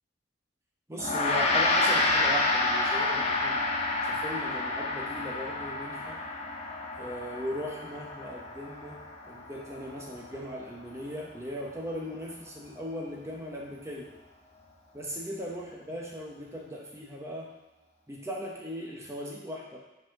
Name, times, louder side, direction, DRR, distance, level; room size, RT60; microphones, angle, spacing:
voice 1, 0.9-3.6 4.0-6.2 7.0-9.0 9.3-14.1 14.9-17.5 18.1-19.8, equal, 15° right, -2 dB, 0.9 m, -38 dB
Gong, 1.0-10.5, left 2 dB, 35° left, 0.7 m, -29 dB
5.3 x 4.2 x 5.7 m, 1.1 s
head